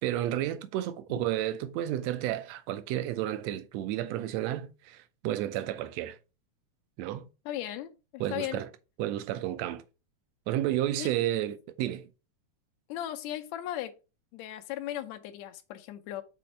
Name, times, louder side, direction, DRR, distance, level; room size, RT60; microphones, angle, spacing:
voice 1, 0.0-6.2 7.0-7.3 8.2-8.7 9.0-9.8 10.5-12.1, right 13 dB, 75° right, 1.8 m, -31 dB
voice 2, 7.5-8.6 11.0-11.1 12.9-14.0 14.3-16.2, left 12 dB, 75° left, 1.9 m, -37 dB
6.0 x 4.2 x 5.0 m
omnidirectional pair, 3.3 m